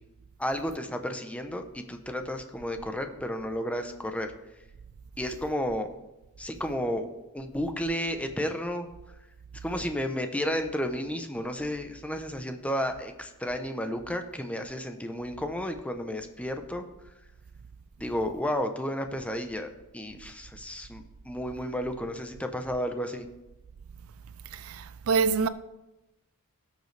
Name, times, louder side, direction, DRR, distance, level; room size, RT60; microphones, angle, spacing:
voice 1, 0.4-4.3 5.2-5.9 6.4-8.9 9.6-16.8 18.0-23.3, equal, 5° left, 0.7 m, -32 dB
voice 2, 24.5-25.5, right 5 dB, 70° right, 0.4 m, -26 dB
16.5 x 6.6 x 3.3 m
head